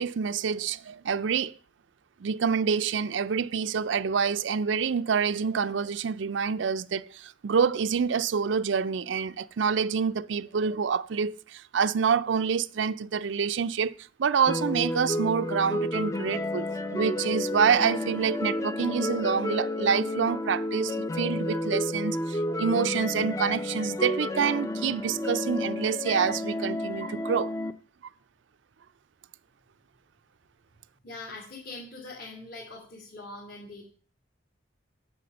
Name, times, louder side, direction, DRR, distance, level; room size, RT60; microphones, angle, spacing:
voice 1, 0.0-1.5 2.2-13.9 14.2-27.5, right 6 dB, 75° right, 0.4 m, -27 dB
sound 1, 14.5-27.7, left 1 dB, 15° left, 0.5 m, -31 dB
voice 2, 31.0-33.9, left 2 dB, 55° left, 2.8 m, -42 dB
9.4 x 5.9 x 6.8 m
head